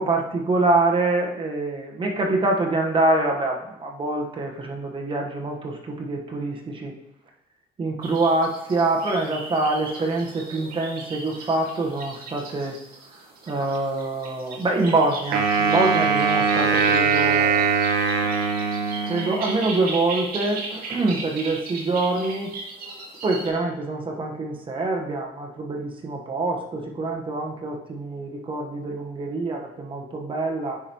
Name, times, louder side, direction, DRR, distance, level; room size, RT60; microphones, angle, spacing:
voice 1, 0.0-6.9 7.8-12.8 13.5-17.7 19.1-22.5 23.2-30.8, right 2 dB, 30° right, 1 dB, 1.2 m, -25 dB
sound 1, 8.0-23.5, right 3 dB, 60° right, 2.2 m, -37 dB
Wind instrument woodwind instrument, 15.3-19.6, right 5 dB, 80° right, 1.0 m, -21 dB
9.7 x 5.0 x 3.0 m, 0.90 s
cardioid pair, 110°, 17 cm